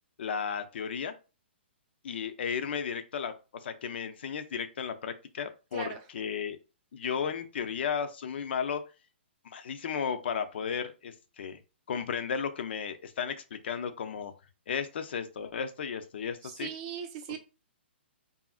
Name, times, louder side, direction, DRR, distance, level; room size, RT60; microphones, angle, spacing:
voice 1, 0.2-1.1 2.0-3.3 3.6-6.6 6.9-8.8 9.4-11.6 11.9-14.3 14.7-16.7, left 7 dB, 65° left, 0.5 m, -34 dB
voice 2, 16.4-17.4, right 7 dB, 30° right, 0.5 m, -39 dB
2.7 x 2.5 x 2.4 m
hypercardioid pair, 150°, 6 cm